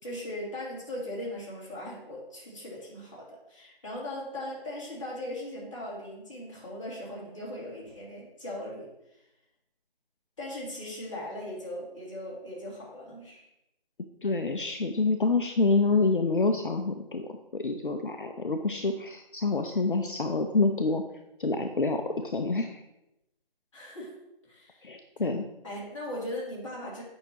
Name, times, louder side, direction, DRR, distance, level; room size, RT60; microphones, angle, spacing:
voice 1, 0.0-9.2 10.4-13.5 23.7-24.1 24.5-25.3 25.6-27.0, left 1 dB, 30° left, -5 dB, 2.4 m, -39 dB
voice 2, 14.2-21.0 21.4-22.8 24.8-25.4, left 3 dB, 60° left, 6 dB, 0.6 m, -27 dB
8.8 x 5.7 x 2.9 m, 0.88 s
figure-of-eight pair, 160°, 29 cm